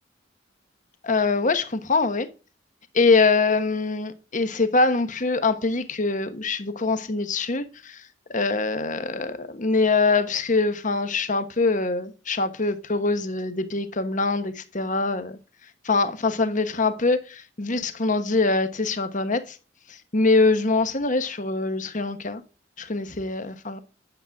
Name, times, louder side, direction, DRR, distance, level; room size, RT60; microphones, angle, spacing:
voice 1, 1.0-2.3 2.9-8.0 8.3-15.4 15.8-19.6 20.1-22.4 22.8-23.8, left 3 dB, 40° left, 1.1 m, -23 dB
10.0 x 7.3 x 3.5 m
head